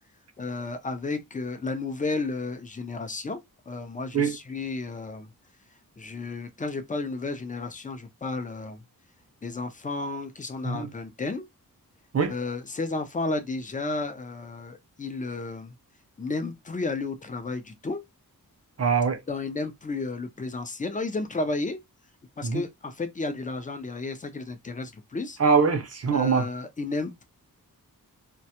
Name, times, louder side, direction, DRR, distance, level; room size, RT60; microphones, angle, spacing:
voice 1, 0.4-5.3 6.0-8.8 9.4-11.5 12.3-15.7 16.2-18.0 19.3-21.8 22.4-25.4 26.1-27.2, left 3 dB, 20° left, 0.5 m, -32 dB
voice 2, 18.8-19.2 22.4-22.6 25.4-26.5, right 5 dB, 45° right, 0.6 m, -23 dB
2.2 x 2.0 x 2.8 m
wide cardioid pair, 75°, 36 cm